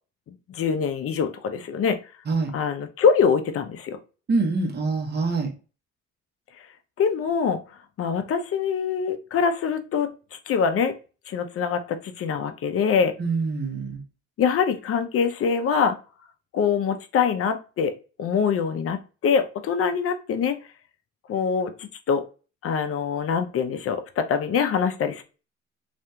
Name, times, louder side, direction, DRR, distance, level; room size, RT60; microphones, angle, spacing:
voice 1, 0.5-2.0 2.5-4.0 7.0-7.6 8.0-10.1 10.5-10.9 11.3-13.1 14.4-16.0 16.5-20.6 21.3-22.2 22.6-25.2, left 6 dB, 50° left, 7 dB, 0.5 m, -24 dB
voice 2, 4.3-5.5 13.2-14.0, right 3 dB, 35° right, 2 dB, 0.9 m, -25 dB
2.8 x 2.5 x 2.2 m, 0.33 s
cardioid pair, 90°, 30 cm